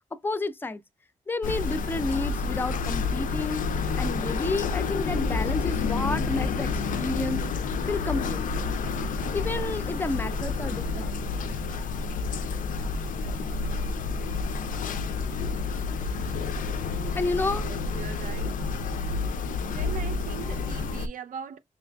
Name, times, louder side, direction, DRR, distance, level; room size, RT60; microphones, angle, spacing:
voice 1, 0.1-0.8 1.3-3.6 4.0-7.4 7.9-8.4 9.3-11.2 17.1-17.7, left 2 dB, 15° left, 0.3 m, -30 dB
sound 1, 1.4-21.1, left 4 dB, 85° left, 0.4 m, -29 dB
voice 2, 17.5-18.6 19.6-21.6, right 8 dB, 90° right, 0.5 m, -40 dB
5.6 x 2.4 x 2.2 m
wide cardioid pair, 160°, 13 cm